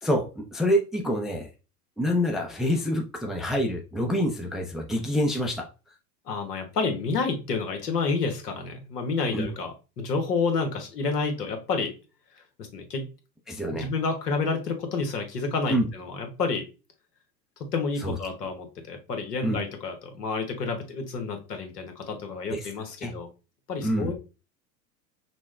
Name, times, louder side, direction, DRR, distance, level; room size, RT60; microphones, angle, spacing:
voice 1, 0.0-1.5 2.0-5.7 9.3-9.5 13.5-13.9 15.7-15.9 18.0-18.2 19.4-19.6 22.5-22.7 23.0-23.1 23.8-24.1, equal, ahead, 2 dB, 0.4 m, -26 dB
voice 2, 6.3-11.9 12.6-13.0 13.7-16.6 17.6-23.3 23.7-24.1, left 4 dB, 80° left, 5 dB, 1.4 m, -29 dB
6.0 x 2.2 x 3.2 m, 0.30 s
hypercardioid pair, 90°, 47 cm